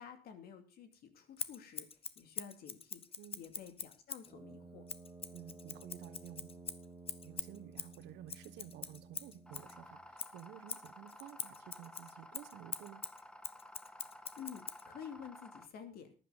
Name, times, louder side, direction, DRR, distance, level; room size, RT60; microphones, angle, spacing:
voice 1, 0.0-1.8 2.2-3.0 3.3-4.8 14.4-16.1, left 8 dB, 65° left, 2.6 m, -50 dB
Scissors, 1.4-4.3 4.9-9.7 10.2-14.8, left 6 dB, 35° left, 1.0 m, -45 dB
Brass instrument, 4.2-10.1, right 3 dB, 15° right, 2.9 m, -55 dB
voice 2, 5.3-6.6 7.2-13.1, right 12 dB, 85° right, 1.2 m, -53 dB
sound 1, 9.5-15.7, left 1 dB, 5° left, 0.9 m, -54 dB
14.5 x 11.0 x 4.0 m
cardioid pair, 110°, 17 cm